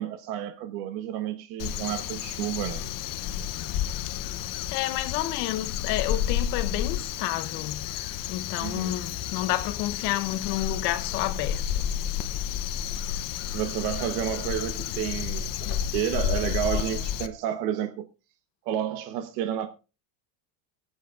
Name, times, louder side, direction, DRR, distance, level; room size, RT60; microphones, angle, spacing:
voice 1, 0.0-2.8 8.6-8.9 13.5-18.0 18.6-19.7, right 10 dB, 80° right, 1.2 m, -31 dB
Crow, 1.6-17.3, left 10 dB, 45° left, 0.8 m, -31 dB
voice 2, 4.7-7.9 8.3-11.9 15.7-15.9, left 15 dB, 80° left, 1.2 m, -30 dB
23.5 x 8.0 x 2.4 m
cardioid pair, 150°, 49 cm